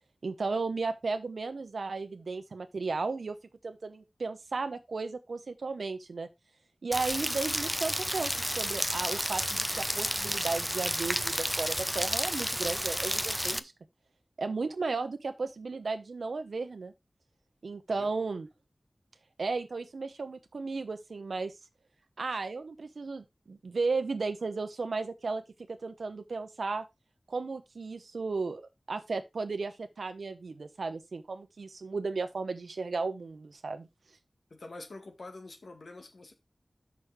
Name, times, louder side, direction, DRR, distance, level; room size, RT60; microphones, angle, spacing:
voice 1, 0.2-3.4 3.6-6.3 6.8-13.7 14.4-16.9 17.6-18.5 19.4-21.5 22.2-25.4 25.7-26.8 27.3-28.6 28.9-33.9, right 4 dB, 90° right, 1.0 m, -34 dB
Rain, 6.9-13.6, equal, ahead, 0.6 m, -31 dB
voice 2, 34.5-36.3, left 2 dB, 80° left, 1.9 m, -46 dB
6.4 x 6.3 x 5.0 m
wide cardioid pair, 60°, 0 cm